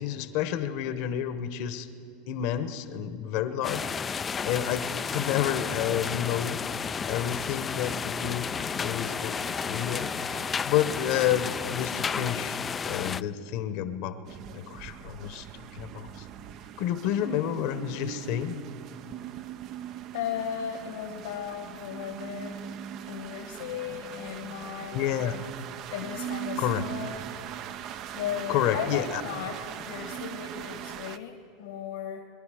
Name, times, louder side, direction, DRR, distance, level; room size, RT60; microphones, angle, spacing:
voice 1, 0.0-1.9 2.3-4.2 4.4-6.6 7.0-14.2 14.5-16.3 16.8-18.6 24.9-25.4 26.6-26.9 28.5-29.2, left 10 dB, 60° left, 11 dB, 1.0 m, -30 dB
sound 1, 3.6-13.2, left 6 dB, 25° left, 0.3 m, -32 dB
Domestic sounds home sounds, 8.6-12.6, right 5 dB, 35° right, 1.0 m, -47 dB
sound 2, 14.2-31.2, right 10 dB, 50° right, 0.6 m, -40 dB
voice 2, 20.1-22.6 23.1-25.4 25.9-27.2 28.1-29.6 29.9-32.2, left 8 dB, 75° left, 3 dB, 1.4 m, -36 dB
23.0 x 11.5 x 5.0 m, 2.9 s
hypercardioid pair, 95°, 0 cm